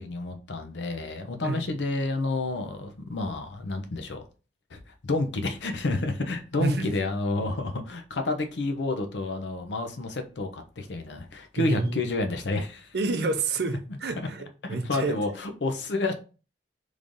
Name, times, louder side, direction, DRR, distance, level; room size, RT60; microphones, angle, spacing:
voice 1, 0.0-4.2 4.7-12.9 14.2-14.3 14.6-16.1, left 2 dB, 75° left, 0.6 m, -30 dB
voice 2, 11.6-12.1 12.9-15.1, right 3 dB, 65° right, 0.6 m, -28 dB
3.2 x 2.6 x 3.6 m
head